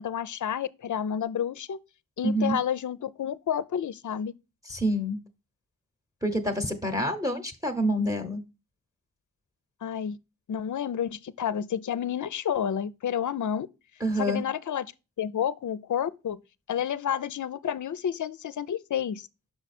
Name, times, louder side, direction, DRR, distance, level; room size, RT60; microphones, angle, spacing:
voice 1, 0.0-1.8 2.2-4.3 9.8-10.2 10.5-13.7 14.2-14.9 15.2-16.4 16.7-19.3, left 9 dB, 55° left, 0.5 m, -30 dB
voice 2, 2.2-2.6 4.7-5.2 6.2-8.4 14.0-14.4, equal, 10° right, 0.9 m, -27 dB
6.0 x 4.9 x 4.2 m
wide cardioid pair, 60°, 36 cm